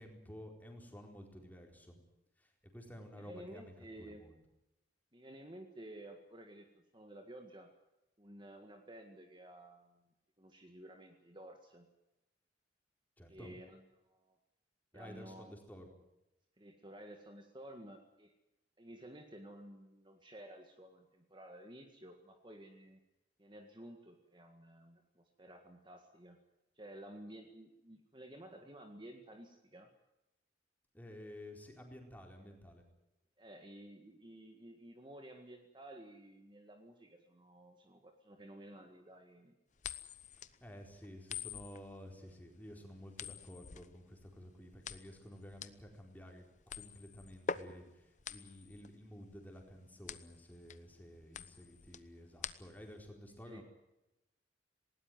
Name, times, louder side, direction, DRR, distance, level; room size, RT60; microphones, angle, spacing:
voice 1, 0.0-2.0 2.4-3.7 4.0-4.4 13.2-13.6 14.9-16.0 30.9-32.8 40.6-53.6, equal, 10° left, 2 dB, 4.4 m, -52 dB
voice 2, 3.2-4.2 5.1-7.7 8.2-10.1 10.4-11.9 13.3-14.4 14.9-15.6 16.6-18.3 18.8-23.0 23.4-26.4 26.8-29.9 33.4-39.5 53.5-53.6, right 1 dB, 25° right, 4 dB, 1.9 m, -53 dB
sound 1, 39.8-53.0, left 6 dB, 40° left, 0.9 m, -46 dB
20.0 x 18.5 x 9.5 m, 0.92 s
head